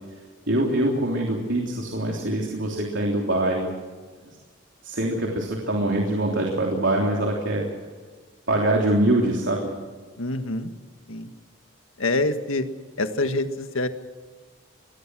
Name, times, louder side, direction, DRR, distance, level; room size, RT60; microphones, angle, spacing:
voice 1, 0.5-3.7 4.8-7.7 8.5-9.7, right 1 dB, 65° right, -1 dB, 3.3 m, -24 dB
voice 2, 10.2-10.7 11.1-11.3 12.0-12.6 13.0-13.9, left 2 dB, 90° left, 8 dB, 1.7 m, -25 dB
24.0 x 20.0 x 6.3 m, 1.4 s
head